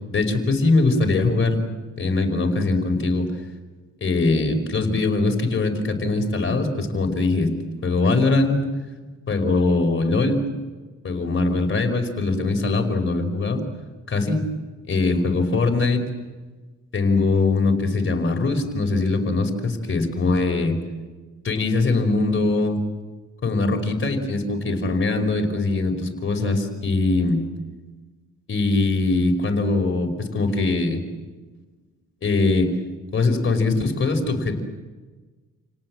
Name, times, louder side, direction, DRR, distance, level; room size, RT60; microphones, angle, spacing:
voice 1, 0.1-1.6 2.0-3.3 4.0-7.5 7.8-8.6 9.3-10.4 11.0-13.6 14.1-14.5 14.9-16.0 16.9-20.8 21.4-22.8 23.4-27.4 28.5-31.0 32.2-32.7 33.1-34.6, left 3 dB, 40° left, 4 dB, 5.5 m, -21 dB
30.0 x 18.5 x 7.8 m, 1.3 s
cardioid pair, 90°, 30 cm